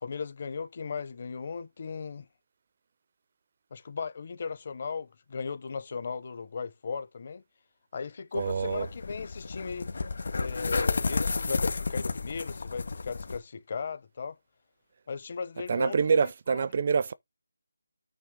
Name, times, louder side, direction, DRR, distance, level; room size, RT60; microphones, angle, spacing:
voice 1, 0.0-2.3 3.7-7.4 7.9-9.9 10.4-14.4 15.1-16.0 16.2-16.6, left 5 dB, 30° left, 0.9 m, -37 dB
voice 2, 8.3-8.9 15.7-17.1, right 6 dB, 30° right, 0.4 m, -26 dB
sound 1, 8.4-13.4, left 4 dB, 50° left, 1.7 m, -31 dB
9.3 x 3.2 x 6.2 m
figure-of-eight pair, 175°, 0 cm